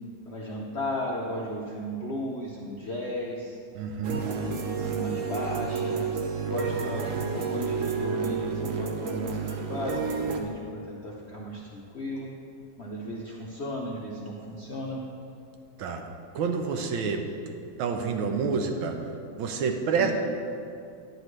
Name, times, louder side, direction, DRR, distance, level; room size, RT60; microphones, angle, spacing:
voice 1, 0.3-3.6 4.2-6.0 6.4-12.3 12.8-15.0 20.0-20.1, equal, 60° left, -4 dB, 0.7 m, -35 dB
voice 2, 3.7-4.2 15.8-16.0 16.3-17.2 17.8-19.0 19.4-20.1, right 5 dB, 80° right, 4 dB, 1.6 m, -28 dB
sound 1, 4.0-10.4, right 5 dB, 65° right, 0.8 m, -30 dB
10.5 x 9.5 x 3.2 m, 2.5 s
omnidirectional pair, 2.2 m